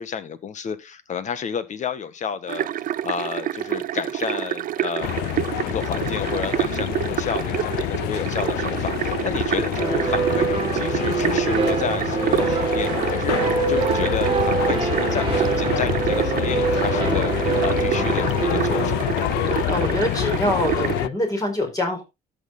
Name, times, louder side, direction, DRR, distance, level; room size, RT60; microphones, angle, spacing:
voice 1, 0.0-2.7 3.0-5.3 5.6-17.3 17.6-19.2, left 6 dB, 45° left, 1.5 m, -30 dB
sound 1, 2.5-21.0, right 12 dB, 55° right, 0.6 m, -28 dB
sound 2, 5.0-21.1, left 17 dB, 80° left, 0.4 m, -27 dB
sound 3, 9.8-19.7, right 6 dB, 30° right, 1.9 m, -25 dB
voice 2, 19.6-22.0, left 1 dB, 20° left, 4.4 m, -24 dB
13.0 x 6.5 x 3.8 m
cardioid pair, 110°, 17 cm